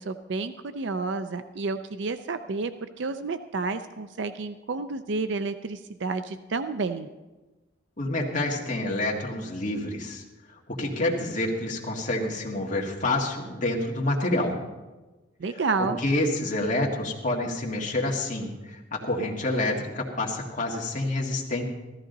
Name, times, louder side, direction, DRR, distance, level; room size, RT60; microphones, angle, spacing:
voice 1, 0.0-2.7 3.0-7.1 15.4-16.0, right 3 dB, 65° right, 10 dB, 0.5 m, -30 dB
voice 2, 8.0-10.2 10.8-14.5 15.8-18.5 18.9-21.6, left 2 dB, 40° left, -1 dB, 1.8 m, -28 dB
14.5 x 14.0 x 3.9 m, 1.1 s
head